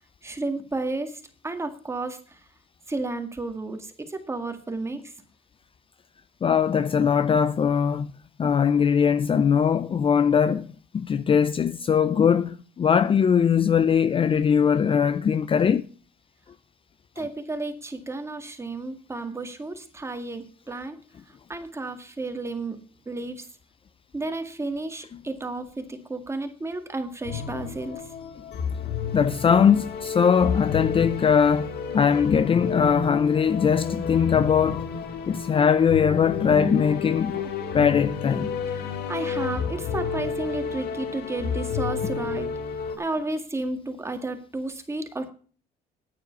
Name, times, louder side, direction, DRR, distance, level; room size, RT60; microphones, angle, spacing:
voice 1, 0.2-2.4 2.9-5.1 17.2-21.0 21.5-22.8 23.1-23.5 24.1-28.1 38.7-42.5 43.0-45.3, right 2 dB, 15° right, 2.0 m, -32 dB
voice 2, 6.4-8.1 8.4-15.8 29.1-34.9 35.3-38.5, left 7 dB, 30° left, 0.5 m, -21 dB
sound 1, 27.2-43.0, left 6 dB, 70° left, 2.1 m, -31 dB
9.7 x 9.1 x 5.4 m
cardioid pair, 110°, 17 cm